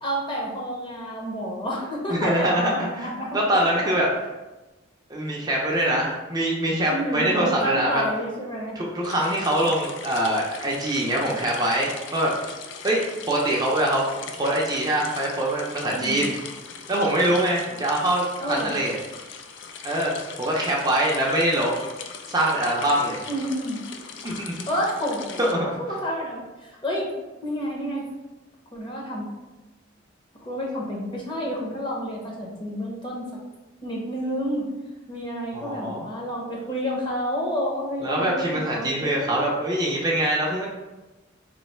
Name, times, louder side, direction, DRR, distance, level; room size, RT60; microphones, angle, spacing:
voice 1, 0.0-3.7 5.8-6.0 6.9-8.8 15.9-16.2 18.4-18.7 23.3-23.8 24.7-27.1 27.4-28.1 28.7-29.3 30.4-33.3 33.8-34.7 35.1-39.5, equal, 25° left, -3 dB, 0.8 m, -29 dB
voice 2, 2.1-4.1 5.1-8.0 8.8-12.3 12.8-13.0 13.3-14.0 14.4-16.3 16.9-19.0 19.8-20.1 20.4-21.7 22.3-23.2 24.2-24.6 25.4-25.7 35.5-36.1 38.0-40.7, right 1 dB, 20° right, -3 dB, 0.5 m, -24 dB
sound 1, 9.0-25.5, left 6 dB, 80° left, 0.4 m, -40 dB
3.1 x 2.5 x 4.2 m, 1.1 s
head